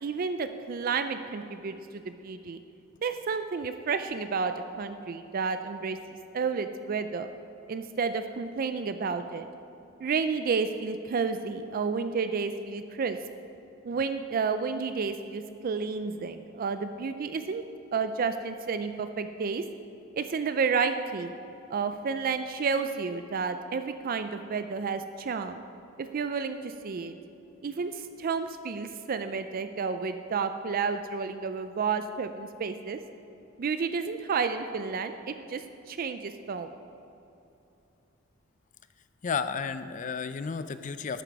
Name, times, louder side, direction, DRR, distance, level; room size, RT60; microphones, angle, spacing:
voice 1, 0.0-2.6 3.0-7.3 7.7-9.5 10.0-13.2 13.8-17.6 17.9-19.6 20.1-21.3 21.7-25.6 26.0-27.1 27.6-33.0 33.6-36.7, right 5 dB, 45° right, 9 dB, 0.4 m, -31 dB
voice 2, 39.2-41.2, left 5 dB, 40° left, 12 dB, 0.4 m, -32 dB
12.0 x 9.0 x 4.6 m, 2.8 s
head